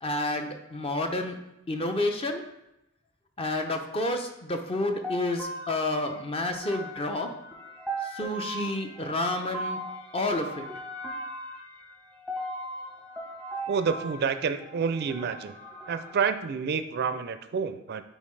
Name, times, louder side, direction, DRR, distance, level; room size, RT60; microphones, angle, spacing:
voice 1, 0.0-1.4 1.7-2.4 3.4-7.3 8.0-9.8 10.1-10.6, left 2 dB, 30° left, 5 dB, 0.6 m, -30 dB
sound 1, 5.0-16.3, right 1 dB, 5° left, 0.9 m, -38 dB
voice 2, 13.7-15.6 15.9-18.0, right 6 dB, 50° right, 10 dB, 0.4 m, -28 dB
8.9 x 4.5 x 3.2 m, 0.87 s
head